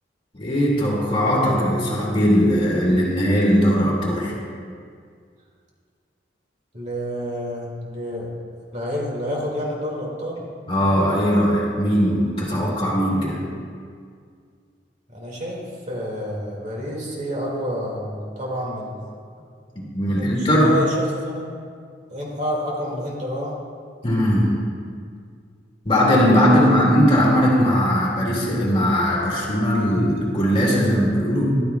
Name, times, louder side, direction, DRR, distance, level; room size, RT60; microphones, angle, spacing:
voice 1, 0.3-4.3 10.7-13.4 19.8-20.7 24.0-24.6 25.8-31.5, equal, 30° left, -4 dB, 2.2 m, -19 dB
voice 2, 6.7-8.3 8.7-10.5 15.1-19.1 20.0-21.5 22.1-23.6 26.5-26.7, equal, 40° right, -3 dB, 2.1 m, -29 dB
14.0 x 12.0 x 2.3 m, 2.1 s
head